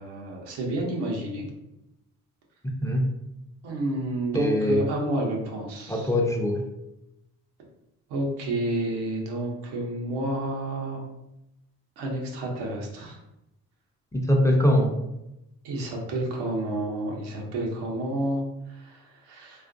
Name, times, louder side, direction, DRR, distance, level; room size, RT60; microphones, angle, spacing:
voice 1, 0.0-1.5 3.6-6.1 8.1-11.0 12.0-13.2 15.6-19.7, right 1 dB, 80° right, -1 dB, 0.7 m, -30 dB
voice 2, 4.3-4.9 5.9-6.6 14.1-14.9, left 1 dB, 10° left, 1 dB, 0.4 m, -22 dB
2.4 x 2.1 x 2.5 m, 0.88 s
hypercardioid pair, 45°, 39 cm